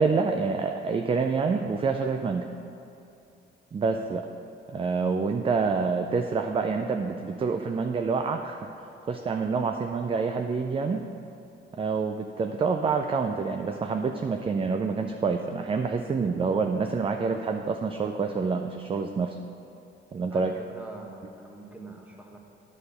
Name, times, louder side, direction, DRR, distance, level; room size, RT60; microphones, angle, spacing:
voice 1, 0.0-2.5 3.7-4.3 4.7-11.0 11.7-19.4 20.1-20.5, right 4 dB, 25° right, 5 dB, 0.4 m, -27 dB
voice 2, 20.3-22.4, right 2 dB, 5° right, 0 dB, 1.2 m, -44 dB
9.4 x 4.3 x 6.6 m, 2.6 s
cardioid pair, 90°, 20 cm